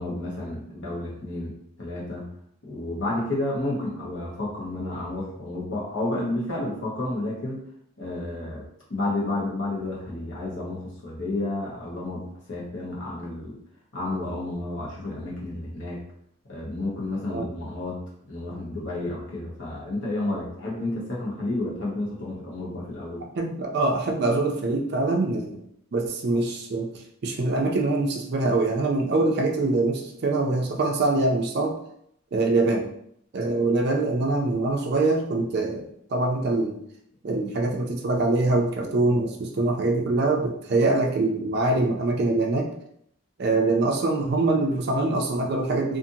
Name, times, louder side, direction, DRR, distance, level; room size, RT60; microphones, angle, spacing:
voice 1, 0.0-1.5 1.8-2.3 2.6-7.6 8.0-8.6 8.9-13.6 13.9-16.0 16.5-18.0 18.3-23.2, left 2 dB, 60° left, -4 dB, 0.9 m, -31 dB
voice 2, 23.4-25.6 25.9-26.9 27.2-31.8 32.3-32.9 33.3-36.8 37.2-42.7 43.4-46.0, right 2 dB, 50° right, 2 dB, 0.4 m, -24 dB
2.6 x 2.5 x 2.6 m, 0.71 s
head